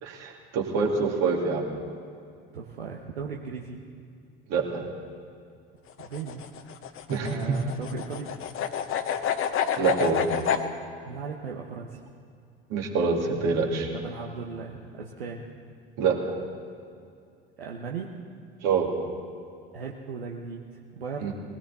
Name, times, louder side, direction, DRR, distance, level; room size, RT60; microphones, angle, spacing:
voice 1, 0.0-1.6 4.5-4.8 7.1-7.6 9.7-10.3 12.7-13.9 16.0-16.4 18.6-18.9 21.2-21.3, right 5 dB, 60° right, 0 dB, 2.7 m, -26 dB
voice 2, 2.5-3.8 6.0-6.5 7.2-8.3 11.0-12.0 13.9-15.5 17.6-18.2 19.7-21.3, right 5 dB, 85° right, -1 dB, 1.1 m, -37 dB
sound 1, 5.9-10.6, left 8 dB, 45° left, 1.1 m, -29 dB
20.5 x 17.0 x 4.2 m, 2.4 s
hypercardioid pair, 65°, 29 cm